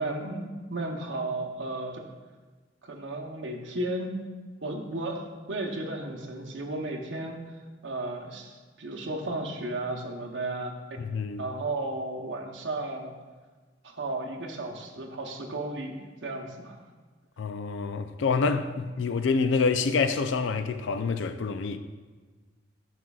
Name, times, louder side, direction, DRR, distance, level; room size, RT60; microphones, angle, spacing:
voice 1, 0.0-2.0 2.8-4.1 4.6-10.8 11.4-13.1 13.8-16.8, right 2 dB, 75° right, 0.9 m, -34 dB
voice 2, 11.0-11.4 17.4-21.8, left 4 dB, 80° left, 0.4 m, -27 dB
11.0 x 6.2 x 2.4 m
head